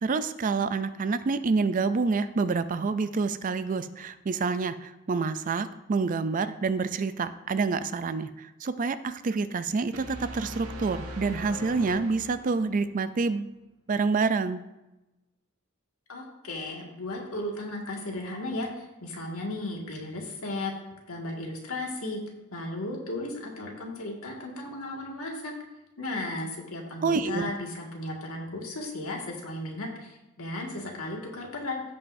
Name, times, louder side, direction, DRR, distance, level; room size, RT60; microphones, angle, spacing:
voice 1, 0.0-13.5 13.9-14.6 27.0-27.5, right 4 dB, 40° right, 12 dB, 0.4 m, -27 dB
sound 1, 9.9-12.8, equal, 80° right, 1.5 m, -40 dB
voice 2, 16.1-20.7 21.1-22.2 22.5-25.5 26.0-31.8, left 2 dB, 80° left, -1 dB, 2.0 m, -35 dB
16.5 x 5.5 x 2.7 m, 0.99 s
head